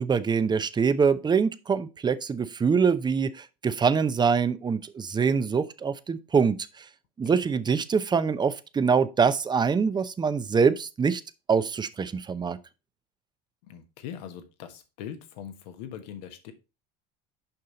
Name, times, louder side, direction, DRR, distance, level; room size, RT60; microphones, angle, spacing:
voice 1, 0.0-6.6 7.2-11.2 11.5-12.6, right 5 dB, 20° right, 0.7 m, -24 dB
voice 2, 13.7-16.5, left 9 dB, 75° left, 1.4 m, -41 dB
6.8 x 5.5 x 4.0 m
supercardioid pair, 90°, 21 cm